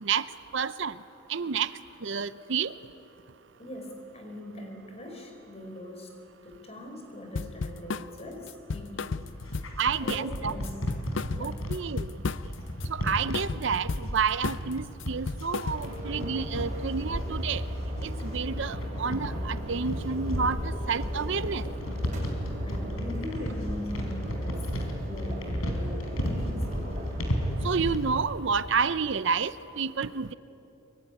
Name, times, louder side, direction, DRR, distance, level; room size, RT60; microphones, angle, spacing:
voice 1, 0.5-0.9 1.3-1.7 2.0-2.7 9.8-10.5 11.4-12.1 12.9-17.6 18.2-21.6 27.6-30.3, right 6 dB, 55° right, 14 dB, 0.6 m, -29 dB
voice 2, 3.6-6.1 6.4-9.3 10.0-10.8 11.3-11.8 22.6-27.1, left 1 dB, 30° left, 3 dB, 4.6 m, -41 dB
sound 1, 7.3-8.1 8.5-9.8 10.1-10.4 10.6-12.6 12.8-14.1 14.4-14.7 15.0-16.0, left 4 dB, 60° left, 0.5 m, -33 dB
sound 2, 9.3-28.2, equal, 80° left, 4.5 m, -35 dB
sound 3, 15.7-27.7, equal, 35° right, 7.6 m, -35 dB
23.5 x 23.5 x 10.0 m, 3.0 s
head